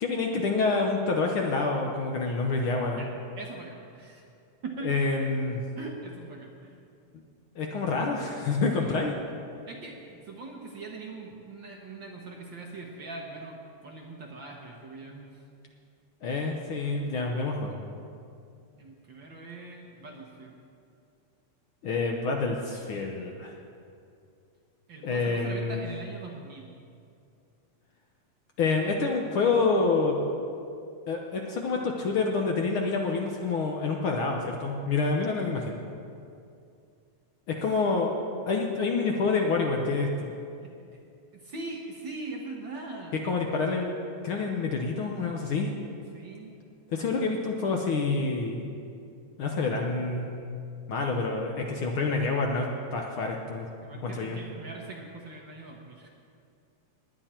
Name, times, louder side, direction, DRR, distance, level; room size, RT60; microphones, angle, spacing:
voice 1, 0.0-3.0 4.8-5.6 7.6-9.1 16.2-17.8 21.8-23.5 25.0-25.8 28.6-30.2 31.1-35.8 37.5-38.1 38.5-40.3 43.2-43.9 44.2-45.7 46.9-48.7 49.4-50.3 50.9-53.7 54.0-54.4, left 4 dB, 65° left, 1 dB, 1.3 m, -27 dB
voice 2, 3.4-4.2 4.6-4.9 5.8-6.8 8.7-9.0 9.6-15.4 18.7-20.5 24.9-26.7 40.6-40.7 41.3-43.2 46.1-46.6 47.0-47.4 53.8-56.1, right 3 dB, 55° right, -1 dB, 1.5 m, -41 dB
20.5 x 9.0 x 4.4 m, 2.5 s
omnidirectional pair, 3.4 m